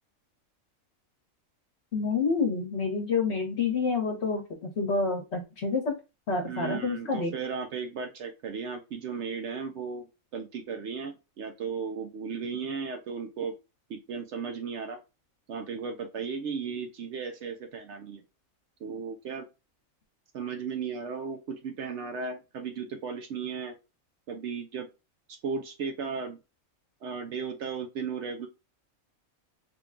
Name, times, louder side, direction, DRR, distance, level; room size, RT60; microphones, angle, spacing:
voice 1, 1.9-4.4 4.8-5.9 6.3-7.3, left 4 dB, 55° left, 2 dB, 1.2 m, -28 dB
voice 2, 6.4-10.1 10.3-13.5 13.9-15.0 15.5-18.2 18.8-19.5 20.3-23.7 24.3-24.9 25.3-26.4 27.0-28.5, right 5 dB, 65° right, 5 dB, 0.8 m, -35 dB
3.6 x 2.3 x 3.5 m, 0.27 s
omnidirectional pair, 1.4 m